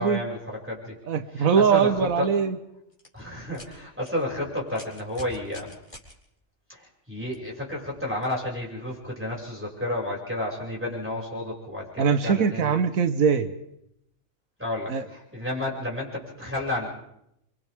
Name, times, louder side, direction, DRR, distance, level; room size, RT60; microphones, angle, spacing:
voice 1, 0.0-1.0 1.3-2.3 3.1-5.8 6.7-12.7 14.6-16.9, left 1 dB, 10° right, -3 dB, 6.3 m, -31 dB
voice 2, 1.1-2.6 12.0-13.5 14.9-15.0, right 6 dB, 85° right, 10 dB, 1.4 m, -22 dB
sound 1, 2.9-3.1 3.5-3.7 4.0-4.1 4.7-6.1 7.3-7.4 8.2-8.3, left 1 dB, 25° left, 4.2 m, -44 dB
29.5 x 24.5 x 3.6 m, 0.80 s
omnidirectional pair, 1.4 m